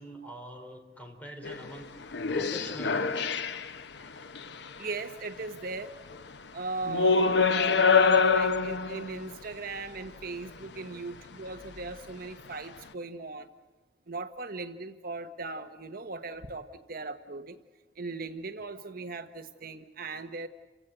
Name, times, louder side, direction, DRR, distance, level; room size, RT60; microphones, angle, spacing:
voice 1, 0.0-3.3, right 1 dB, 10° left, 3 dB, 4.3 m, -44 dB
sound 1, 1.4-1.7 2.1-3.8 4.2-4.5 6.1-6.2 6.9-9.3 11.9-12.0, left 5 dB, 75° left, 0.9 m, -25 dB
voice 2, 4.8-5.9 6.5-13.5 14.1-17.6 18.0-20.5, right 3 dB, 55° right, 7 dB, 1.3 m, -38 dB
29.5 x 17.0 x 7.9 m, 1.3 s
head